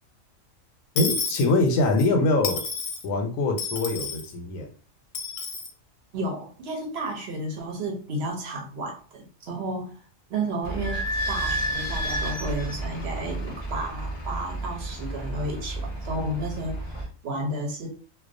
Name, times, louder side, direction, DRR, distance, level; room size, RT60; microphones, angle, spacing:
voice 1, 1.0-2.6 3.0-4.7, left 2 dB, 90° left, 1.0 m, -23 dB
Dishes pots and pans / Coin (dropping), 1.0-2.1 2.4-3.0 3.6-4.3 5.1-5.7, left 4 dB, 65° left, 0.8 m, -31 dB
voice 2, 6.1-10.0 10.3-17.9, right 1 dB, 60° right, 0.8 m, -32 dB
Idling / Squeak, 10.6-17.0, right 1 dB, 30° left, 0.5 m, -31 dB
2.3 x 2.2 x 2.5 m
omnidirectional pair, 1.4 m